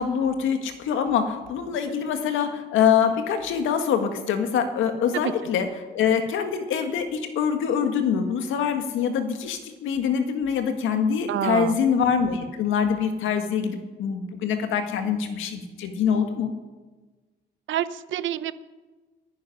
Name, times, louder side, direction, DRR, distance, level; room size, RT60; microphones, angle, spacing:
voice 1, 0.0-16.5, left 7 dB, 85° left, 7 dB, 1.8 m, -24 dB
voice 2, 11.3-11.8 17.7-18.5, right 11 dB, 75° right, 15 dB, 0.8 m, -27 dB
11.0 x 10.5 x 9.9 m, 1.3 s
cardioid pair, 90°, 20 cm